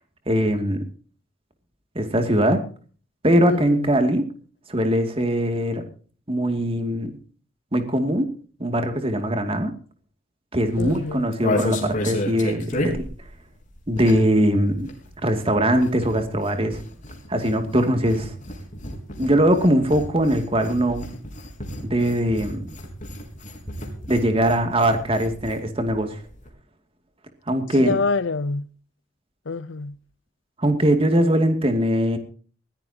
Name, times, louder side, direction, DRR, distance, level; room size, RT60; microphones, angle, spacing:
voice 1, 0.3-0.9 1.9-2.6 3.2-4.2 4.7-5.8 6.3-7.2 7.7-8.3 8.6-9.7 10.5-13.0 13.9-14.9 15.2-16.8 17.3-18.3 19.2-21.1 21.8-22.7 24.1-26.2 27.5-28.0 30.6-32.2, right 1 dB, 30° right, 2.5 m, -21 dB
voice 2, 3.4-3.9 10.8-11.3 27.8-28.7 29.5-30.0, left 4 dB, 75° left, 0.7 m, -26 dB
sound 1, 10.7-14.4 14.7-25.6 25.9-26.0 26.2-26.5, left 1 dB, 40° left, 4.5 m, -32 dB
21.0 x 16.0 x 2.9 m
head